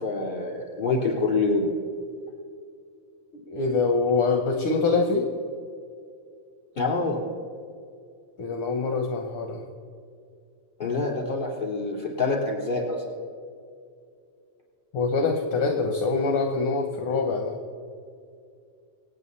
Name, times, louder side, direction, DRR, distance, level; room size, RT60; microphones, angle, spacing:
voice 1, 0.0-1.7 6.7-7.2 10.8-13.0, left 3 dB, 15° left, -2 dB, 3.3 m, -26 dB
voice 2, 3.5-5.3 8.4-9.6 14.9-17.6, left 4 dB, 60° left, 4 dB, 1.7 m, -24 dB
26.0 x 9.3 x 4.1 m, 2.3 s
omnidirectional pair, 3.4 m